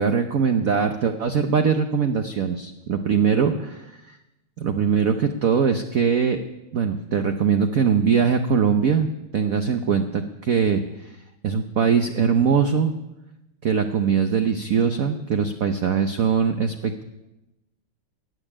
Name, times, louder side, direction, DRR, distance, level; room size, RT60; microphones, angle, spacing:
voice 1, 0.0-4.2 4.6-6.4 6.7-12.9 13.6-17.0, right 6 dB, 60° right, 7 dB, 0.9 m, -22 dB
18.0 x 7.1 x 9.9 m, 0.96 s
omnidirectional pair, 2.4 m